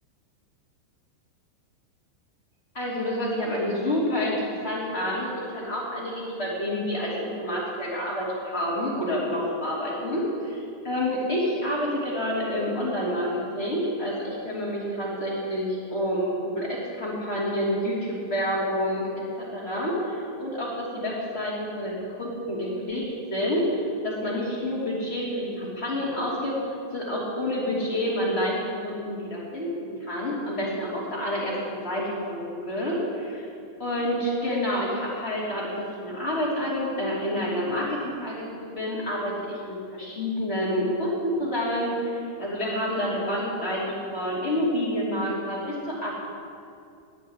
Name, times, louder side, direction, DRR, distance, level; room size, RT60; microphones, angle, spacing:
voice 1, 2.7-19.0 19.4-26.5 26.9-28.6 28.8-33.4 33.8-39.6 39.9-46.1, equal, 20° left, -6 dB, 2.0 m, -28 dB
10.0 x 8.4 x 9.7 m, 2.4 s
omnidirectional pair, 5.6 m